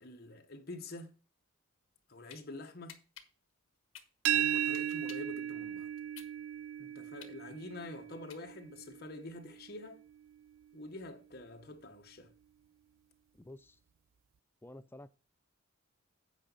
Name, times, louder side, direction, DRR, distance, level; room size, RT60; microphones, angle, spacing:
voice 1, 0.0-1.1 2.1-3.0 4.3-5.9 6.8-10.0 10.7-12.3, left 2 dB, 45° left, 1.2 m, -47 dB
sound 1, 1.9-2.4 2.9-5.4 5.8-8.8, left 9 dB, 65° left, 1.3 m, -54 dB
sound 2, 4.3-10.0, right 10 dB, 65° right, 0.4 m, -36 dB
voice 2, 13.3-13.8 14.6-15.1, left 1 dB, 10° left, 0.4 m, -51 dB
8.8 x 5.1 x 5.4 m
head